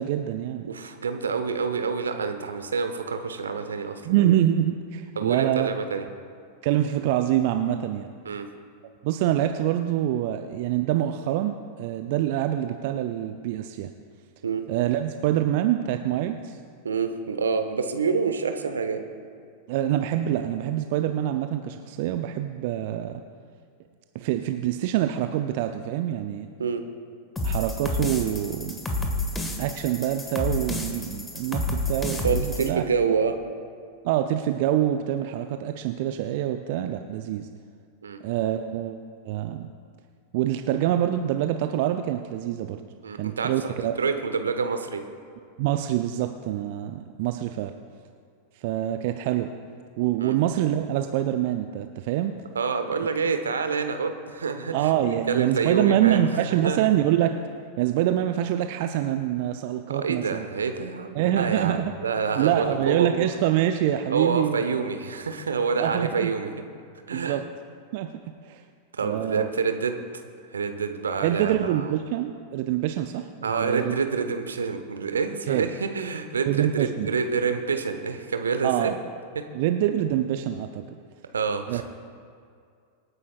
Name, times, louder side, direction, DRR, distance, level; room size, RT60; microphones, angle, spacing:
voice 1, 0.0-0.7 4.1-5.7 6.6-8.1 9.0-13.9 14.7-16.6 19.7-23.2 24.1-26.5 27.4-28.9 29.6-32.8 34.0-37.5 38.2-39.0 39.2-39.7 40.3-42.8 43.2-43.9 45.6-47.7 48.6-49.5 50.0-52.4 54.7-57.3 57.8-60.4 61.1-61.9 62.4-64.6 65.8-66.3 67.1-67.4 67.9-68.1 68.4-68.6 69.0-69.5 71.2-74.0 75.5-75.6 76.5-77.1 78.6-78.9 79.5-80.8 81.7-81.8, right 12 dB, 50° right, 7 dB, 0.5 m, -25 dB
voice 2, 0.7-4.0 5.2-6.0 8.2-8.5 14.4-14.6 16.8-19.0 26.6-26.8 32.2-33.4 38.0-38.2 43.0-45.0 50.2-50.3 52.5-54.9 55.3-56.9 59.9-63.3 64.1-66.6 67.1-67.4 69.0-70.0 70.5-71.9 73.4-79.0 81.3-81.8, right 5 dB, 70° right, 7 dB, 1.0 m, -27 dB
sound 1, 27.4-32.7, left 1 dB, 15° left, 1.6 m, -29 dB
26.0 x 9.7 x 2.4 m, 2.3 s
figure-of-eight pair, 90°, 0 cm